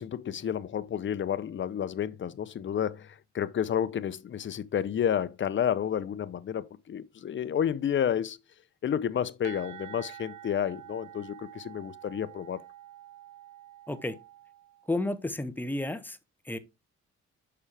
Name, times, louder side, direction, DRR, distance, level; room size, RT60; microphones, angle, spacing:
voice 1, 0.0-8.4 8.8-12.6, left 9 dB, 40° left, 0.6 m, -30 dB
sound 1, 9.4-15.0, right 12 dB, 80° right, 1.0 m, -48 dB
voice 2, 13.9-14.2 14.9-16.2 16.4-16.6, left 2 dB, 5° left, 0.8 m, -31 dB
6.9 x 5.5 x 3.3 m
cardioid pair, 90°, 30 cm